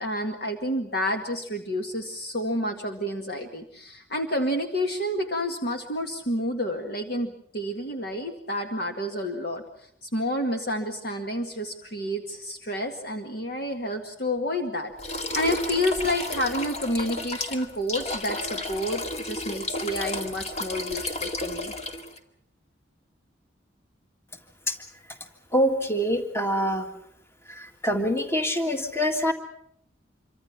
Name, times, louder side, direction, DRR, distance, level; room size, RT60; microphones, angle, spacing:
voice 1, 0.0-9.6 10.0-21.7, left 1 dB, 55° left, 4 dB, 2.0 m, -29 dB
sound 1, 15.0-22.2, left 2 dB, 35° left, 2.2 m, -32 dB
voice 2, 25.5-26.9 27.5-29.3, equal, 15° left, 6 dB, 1.9 m, -25 dB
27.0 x 24.5 x 6.0 m, 0.69 s
head